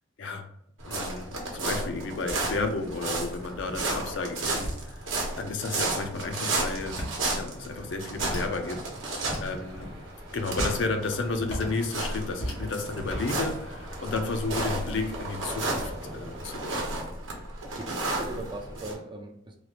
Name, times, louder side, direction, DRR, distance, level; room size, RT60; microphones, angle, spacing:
sound 1, 0.8-18.9, right 2 dB, 75° right, 0.9 m, -33 dB
voice 1, 0.9-5.1 5.4-7.0 7.3-9.9 10.3-15.8 16.1-17.0, left 3 dB, 65° left, 6 dB, 0.5 m, -32 dB
sound 2, 2.3-5.2 5.9-6.0 6.6-8.8 9.2-9.9 10.2-12.6 12.9-14.2, equal, 85° left, 1.3 m, -38 dB
sound 3, 6.2-16.9, right 1 dB, 50° right, 1.0 m, -48 dB
voice 2, 17.6-19.6, right 2 dB, 25° right, 3 dB, 0.3 m, -39 dB
3.1 x 2.4 x 2.9 m, 0.75 s
head